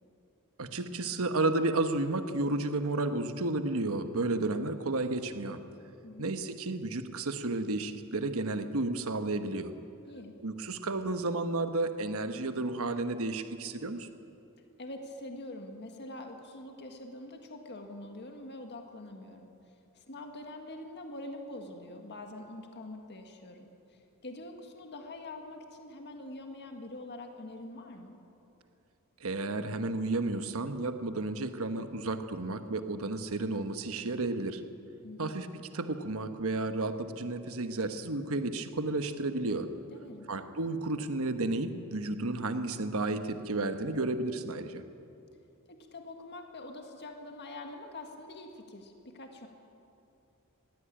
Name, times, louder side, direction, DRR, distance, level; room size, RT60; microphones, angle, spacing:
voice 1, 0.6-5.6 6.2-9.7 10.4-14.1 29.2-34.6 35.2-35.5 35.7-39.7 40.3-44.8, right 2 dB, 70° right, 8 dB, 1.2 m, -32 dB
voice 2, 14.8-19.5 20.0-28.2 35.0-35.3 39.9-40.3 45.7-49.5, left 2 dB, 50° left, 4 dB, 1.8 m, -45 dB
20.5 x 15.5 x 8.8 m, 2.8 s
head